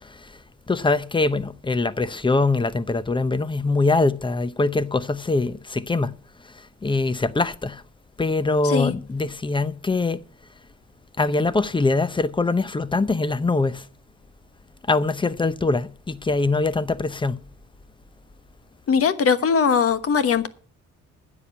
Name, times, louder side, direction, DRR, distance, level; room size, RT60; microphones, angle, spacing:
voice 1, 0.7-6.1 6.8-7.8 8.2-10.2 11.2-13.8 14.9-17.4, left 3 dB, 15° left, 0.7 m, -23 dB
voice 2, 18.9-20.5, left 6 dB, 50° left, 1.2 m, -20 dB
9.8 x 7.2 x 8.0 m
cardioid pair, 90°, 30 cm